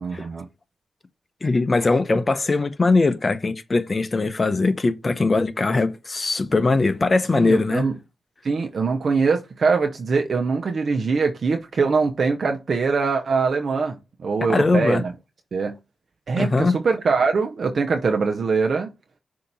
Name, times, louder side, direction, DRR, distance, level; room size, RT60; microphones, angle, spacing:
voice 1, 0.0-0.5 7.3-7.9 8.4-15.1 15.5-15.7 16.3-18.9, right 4 dB, 65° right, 0.6 m, -22 dB
voice 2, 1.4-7.9 14.5-15.0 16.4-16.7, left 3 dB, 40° left, 0.7 m, -21 dB
6.4 x 2.9 x 5.4 m
cardioid pair, 65°, 0 cm